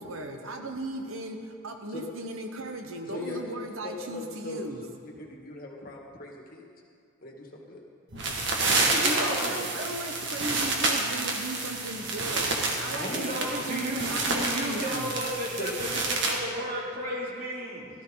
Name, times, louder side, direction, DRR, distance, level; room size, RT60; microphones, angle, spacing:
voice 1, 0.0-4.8 9.0-15.1, right 2 dB, 85° right, 4 dB, 1.1 m, -37 dB
voice 2, 3.0-4.6 5.2-6.7 7.2-7.8 12.9-13.3 15.6-15.7, left 2 dB, 45° left, 0 dB, 1.8 m, -39 dB
sound 1, 8.1-16.4, right 3 dB, 60° right, 1.9 m, -29 dB
voice 3, 8.9-9.6 13.0-17.9, equal, 45° right, -4 dB, 3.1 m, -33 dB
17.5 x 13.5 x 4.0 m, 2.3 s
head